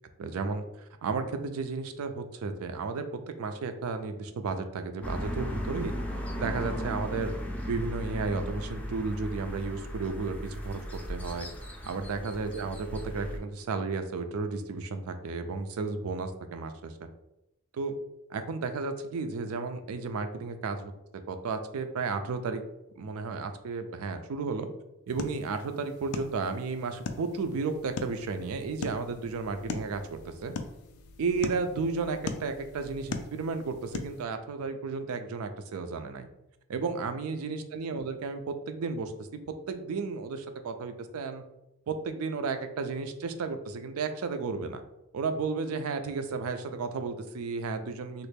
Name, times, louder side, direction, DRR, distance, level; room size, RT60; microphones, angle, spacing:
voice 1, 0.2-0.6 1.0-5.9 6.3-7.3 7.7-10.8 11.1-11.5 11.8-16.9 17.7-18.0 18.3-22.6 23.0-24.7 25.1-30.5 31.2-36.3 36.7-41.4 41.9-44.8 45.1-48.3, right 4 dB, 70° right, 8 dB, 0.4 m, -33 dB
sound 1, 5.0-13.4, equal, 5° left, 0.4 m, -36 dB
sound 2, 25.1-34.2, left 4 dB, 75° left, 0.4 m, -40 dB
3.1 x 2.4 x 3.3 m, 0.87 s
head